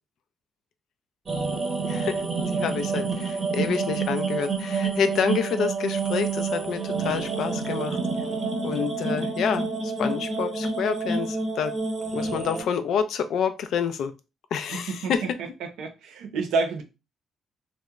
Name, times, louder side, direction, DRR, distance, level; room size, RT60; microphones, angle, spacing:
sound 1, 1.3-12.6, right 4 dB, 40° right, 0.8 m, -28 dB
voice 1, 1.9-2.2 2.5-8.0 8.6-11.7 12.1-14.1 14.5-15.2, left 7 dB, 75° left, 0.3 m, -28 dB
voice 2, 14.7-15.1 15.4-16.8, right 4 dB, 85° right, 0.6 m, -29 dB
2.9 x 2.0 x 2.3 m
cardioid pair, 90°, 0 cm